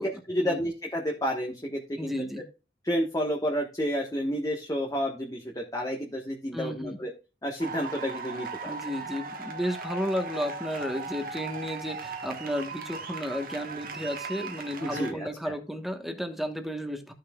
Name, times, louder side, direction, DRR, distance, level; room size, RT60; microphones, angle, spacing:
voice 1, 0.0-2.1 2.8-7.1 7.4-8.7 14.8-15.5, equal, 20° left, 0 dB, 1.3 m, -30 dB
voice 2, 2.0-2.4 6.5-7.0 8.6-17.1, equal, ahead, 6 dB, 1.2 m, -33 dB
sound 1, 7.6-15.1, right 4 dB, 55° right, 1.4 m, -38 dB
14.0 x 6.5 x 2.3 m, 0.31 s
head